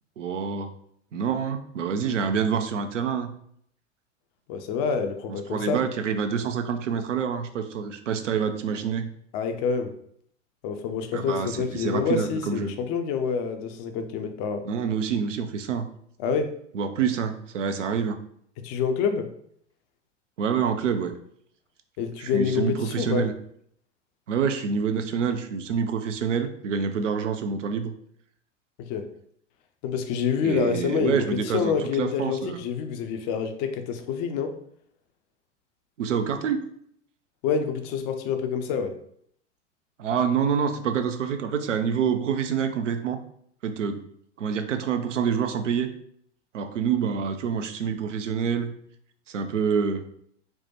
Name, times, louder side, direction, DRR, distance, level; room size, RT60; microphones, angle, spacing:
voice 1, 0.2-0.7 1.1-3.3 5.3-9.1 11.1-12.7 14.6-15.8 16.7-18.2 20.4-21.2 22.2-23.3 24.3-27.9 30.4-32.6 36.0-36.7 40.0-43.2 43.6-44.1 44.4-45.9 46.5-48.7 49.3-50.0, right 6 dB, 75° right, 8 dB, 0.5 m, -27 dB
voice 2, 4.5-5.8 9.3-9.9 10.6-14.6 16.2-16.5 18.6-19.3 22.0-23.3 28.9-29.1 29.8-34.6 37.4-38.9, left 6 dB, 35° left, 7 dB, 0.5 m, -27 dB
4.4 x 2.1 x 2.9 m, 0.67 s
figure-of-eight pair, 90°, 37 cm